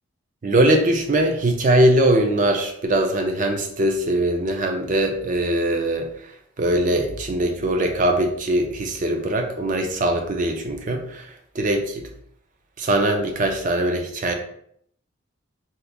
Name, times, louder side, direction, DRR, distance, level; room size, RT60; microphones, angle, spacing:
voice 1, 0.4-6.1 6.6-11.3 11.5-12.0 12.8-14.3, right 1 dB, 40° right, 4 dB, 0.4 m, -21 dB
2.8 x 2.4 x 3.4 m, 0.67 s
head